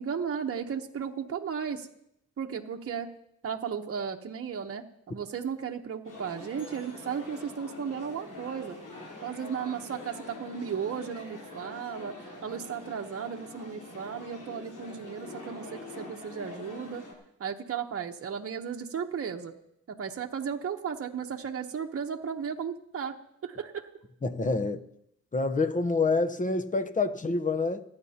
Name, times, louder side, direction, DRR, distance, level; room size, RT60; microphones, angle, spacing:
voice 1, 0.0-1.9 2.4-3.1 3.4-8.8 9.2-12.1 12.4-17.0 17.4-19.5 19.9-23.1 23.4-23.8, right 7 dB, 45° right, 1.0 m, -35 dB
sound 1, 6.0-17.1, left 2 dB, 75° left, 3.8 m, -45 dB
voice 2, 24.2-24.8 25.3-27.8, left 3 dB, 25° left, 0.9 m, -27 dB
28.5 x 9.6 x 2.9 m
cardioid pair, 100°, 31 cm